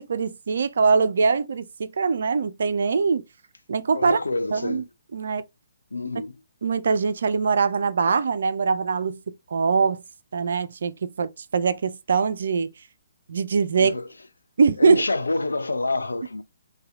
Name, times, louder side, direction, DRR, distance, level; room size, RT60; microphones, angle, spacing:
voice 1, 0.0-3.2 3.7-4.2 4.5-4.8 5.1-5.4 6.6-10.0 10.3-12.7 13.3-14.0 14.6-15.1, right 5 dB, 55° right, 0.3 m, -22 dB
voice 2, 3.9-4.8 5.9-6.3 13.8-14.1 14.8-16.4, left 2 dB, 70° left, 0.4 m, -27 dB
2.7 x 2.2 x 3.5 m
figure-of-eight pair, 130°, 0 cm